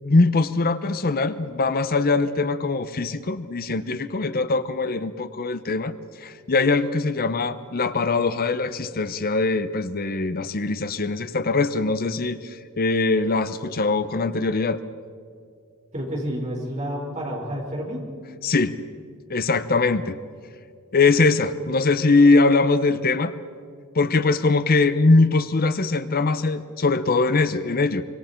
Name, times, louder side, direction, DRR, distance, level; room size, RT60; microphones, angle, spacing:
voice 1, 0.0-14.8 18.4-18.7 19.3-20.2 20.9-23.3 23.9-28.0, left 3 dB, 45° left, 12 dB, 0.7 m, -22 dB
voice 2, 15.9-18.1, equal, 30° right, -2 dB, 5.0 m, -29 dB
25.5 x 25.0 x 4.5 m, 2.2 s
head